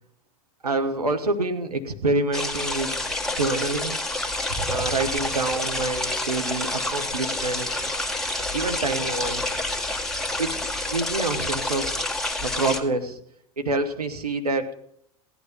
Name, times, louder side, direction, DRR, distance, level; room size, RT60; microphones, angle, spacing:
voice 1, 0.6-2.9 3.4-4.0 4.7-7.8 8.5-9.6 10.4-10.6 10.9-12.0 12.4-13.2 13.6-14.7, right 2 dB, 85° right, 7 dB, 1.8 m, -27 dB
sound 1, 2.3-12.8, left 2 dB, 5° left, 2.0 m, -28 dB
sound 2, 4.5-10.0, right 3 dB, 65° right, 3.2 m, -40 dB
17.0 x 11.5 x 5.5 m, 0.71 s
figure-of-eight pair, 90°, 19 cm